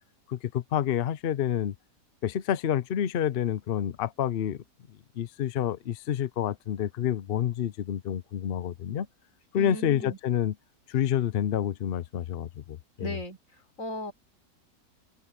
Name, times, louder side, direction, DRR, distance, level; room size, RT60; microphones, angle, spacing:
voice 1, 0.3-1.7 2.2-4.6 5.2-9.1 9.5-10.5 10.9-13.2, left 10 dB, 70° left, 0.5 m, -28 dB
voice 2, 9.6-10.2 13.0-13.4 13.8-14.1, equal, 50° left, 4.4 m, -36 dB
open air
omnidirectional pair, 1.8 m